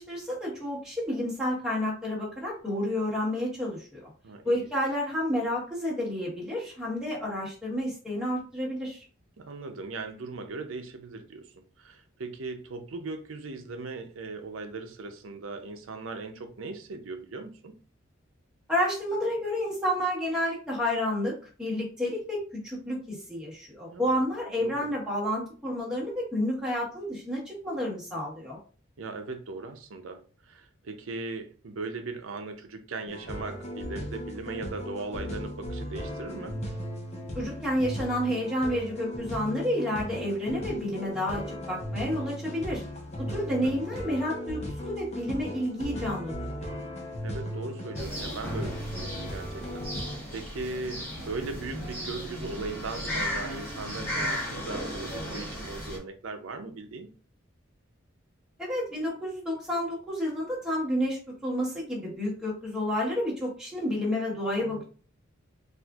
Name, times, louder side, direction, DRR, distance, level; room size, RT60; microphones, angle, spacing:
voice 1, 0.0-4.1 4.4-9.0 18.7-28.6 37.3-42.8 43.2-46.3 46.6-46.7 58.6-64.8, left 1 dB, 5° right, 1.4 m, -30 dB
voice 2, 4.2-4.7 9.4-17.7 23.9-24.2 24.6-24.9 29.0-36.6 43.5-43.7 47.2-57.1 64.6-64.8, right 3 dB, 80° right, 0.6 m, -39 dB
sound 1, 33.1-50.2, equal, 35° left, 0.7 m, -37 dB
sound 2, 47.9-56.0, equal, 10° left, 1.2 m, -35 dB
4.2 x 2.5 x 2.4 m
head